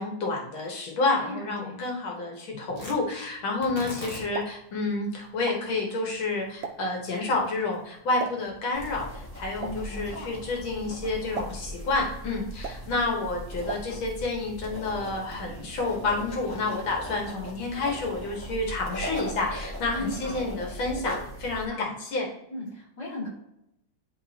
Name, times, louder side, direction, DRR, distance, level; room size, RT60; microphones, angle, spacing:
voice 1, 0.0-22.3, left 3 dB, 85° left, 0 dB, 2.1 m, -29 dB
voice 2, 1.2-1.8 9.6-10.3 19.9-20.4 21.7-22.0 22.5-23.3, left 1 dB, 55° left, -6 dB, 2.9 m, -36 dB
Tearing, 2.7-11.1, left 1 dB, 20° left, 1.3 m, -47 dB
Explosion, 4.1-14.4, right 6 dB, 55° right, 0.9 m, -43 dB
sound 1, 8.7-21.6, equal, 10° right, 1.4 m, -39 dB
11.0 x 3.7 x 2.8 m, 0.81 s
omnidirectional pair, 2.1 m